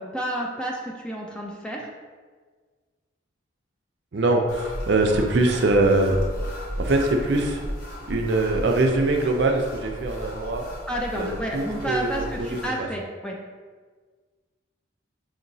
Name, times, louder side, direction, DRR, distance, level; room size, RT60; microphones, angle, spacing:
voice 1, 0.0-1.9 10.9-13.4, right 1 dB, 5° left, -1 dB, 0.3 m, -30 dB
voice 2, 4.1-6.1 6.8-7.6 8.1-10.7 11.1-12.9, right 2 dB, 60° right, 3 dB, 0.5 m, -23 dB
sound 1, 4.5-12.7, equal, 45° left, 0.9 m, -35 dB
5.2 x 2.9 x 2.7 m, 1.5 s
head